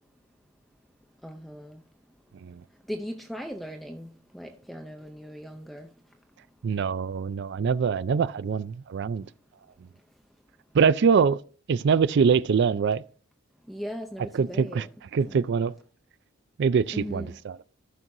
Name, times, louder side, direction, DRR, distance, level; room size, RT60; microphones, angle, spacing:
voice 1, 1.2-1.8 2.9-5.9 13.7-14.9 15.3-15.4 16.9-17.4, equal, ahead, 0.5 m, -38 dB
voice 2, 6.6-9.3 10.7-11.4 11.7-13.0 14.3-14.9 15.1-15.7 16.6-17.6, right 6 dB, 55° right, 0.4 m, -24 dB
14.5 x 6.1 x 2.7 m
head